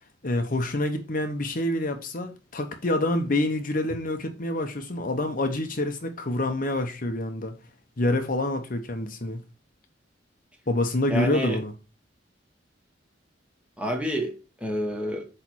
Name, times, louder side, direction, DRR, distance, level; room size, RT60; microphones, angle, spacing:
voice 1, 0.2-7.5 8.0-9.4 10.7-11.7, left 1 dB, 45° left, 0.8 m, -27 dB
voice 2, 11.1-11.6 13.8-15.3, equal, 5° right, 1.3 m, -29 dB
8.1 x 3.3 x 4.5 m
head